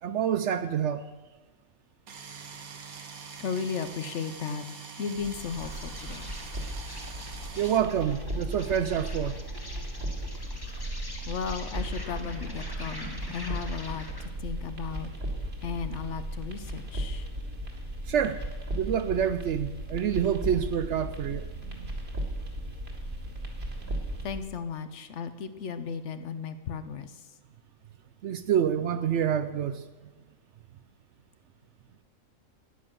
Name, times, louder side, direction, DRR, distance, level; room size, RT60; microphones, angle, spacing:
voice 1, 0.0-1.1 7.6-9.4 18.1-18.4 18.7-21.9 23.9-24.0 28.2-29.9, right 9 dB, 65° right, 0.8 m, -27 dB
sound 1, 2.1-7.8, right 5 dB, 85° right, 1.7 m, -44 dB
voice 2, 3.4-4.6 5.0-6.3 11.3-15.1 15.6-17.3 24.2-27.3, left 6 dB, 60° left, 1.0 m, -35 dB
Insect, 5.0-14.3, left 1 dB, 15° left, 1.3 m, -45 dB
sound 2, 5.2-24.4, right 1 dB, 45° right, 2.1 m, -36 dB
10.0 x 9.8 x 7.4 m
omnidirectional pair, 1.5 m